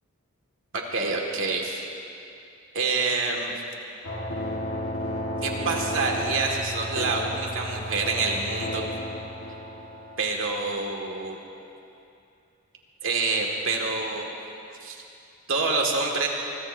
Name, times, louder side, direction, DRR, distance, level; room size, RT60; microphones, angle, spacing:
voice 1, 0.7-1.8 2.7-3.5 5.4-8.9 10.2-11.4 13.0-14.3 14.8-15.0 15.5-16.3, right 3 dB, 60° right, 0 dB, 2.0 m, -27 dB
sound 1, 4.0-11.3, left 1 dB, 75° left, 1.6 m, -33 dB
23.5 x 21.5 x 2.7 m, 2.7 s
head